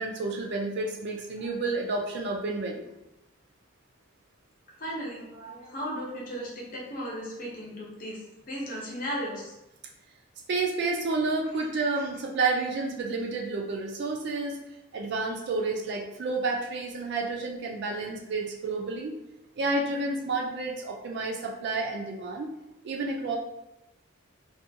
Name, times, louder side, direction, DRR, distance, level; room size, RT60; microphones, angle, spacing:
voice 1, 0.0-2.8 10.5-14.6 14.9-19.2 19.6-22.5 22.8-23.4, right 3 dB, 55° right, 0 dB, 0.3 m, -30 dB
voice 2, 4.8-8.2 8.5-9.5 11.9-12.0, equal, 40° left, -4 dB, 0.7 m, -36 dB
2.4 x 2.2 x 2.7 m, 0.91 s
head